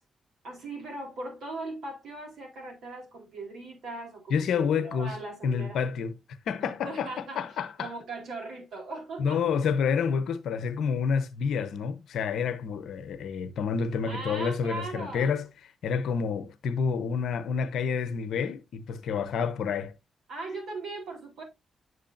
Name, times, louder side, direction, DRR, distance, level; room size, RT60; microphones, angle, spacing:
voice 1, 0.4-5.8 6.6-9.4 14.1-15.4 20.3-21.4, right 2 dB, 75° right, 3.9 m, -39 dB
voice 2, 4.3-6.1 6.5-7.9 9.2-15.5 15.8-19.9, left 6 dB, 80° left, 0.8 m, -29 dB
8.2 x 7.7 x 2.6 m
supercardioid pair, 50°, 0 cm